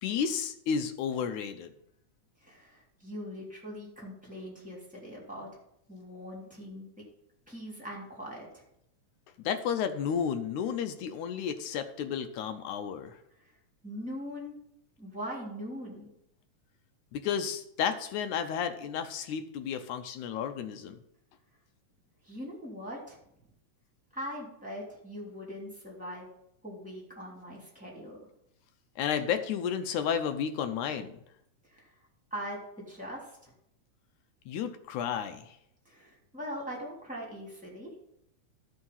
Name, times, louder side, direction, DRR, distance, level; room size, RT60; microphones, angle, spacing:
voice 1, 0.0-1.7 9.4-13.2 17.1-21.0 29.0-31.2 34.5-35.6, left 7 dB, 80° left, 9 dB, 2.0 m, -32 dB
voice 2, 2.4-5.5 5.9-7.0 7.5-8.6 13.4-13.5 13.8-14.6 15.0-16.1 22.2-23.2 24.1-26.3 26.6-28.2 31.6-31.9 32.3-33.5 35.8-37.9, equal, 5° right, -3 dB, 2.8 m, -41 dB
13.0 x 4.8 x 5.5 m, 0.76 s
omnidirectional pair, 3.6 m